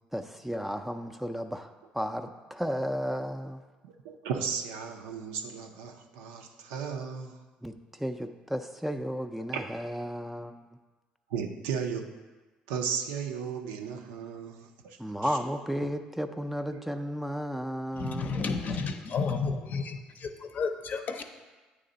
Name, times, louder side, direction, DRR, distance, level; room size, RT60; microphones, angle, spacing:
voice 1, 0.1-3.6 7.6-10.5 15.0-18.4, equal, 5° right, 7 dB, 0.4 m, -33 dB
voice 2, 3.8-7.4 9.4-9.6 11.3-12.2 12.7-15.0 16.7-16.8, right 6 dB, 85° right, 3 dB, 0.4 m, -35 dB
voice 3, 17.9-21.2, left 4 dB, 50° left, 7 dB, 0.6 m, -32 dB
8.4 x 3.3 x 3.9 m, 1.3 s
supercardioid pair, 65°, 3 cm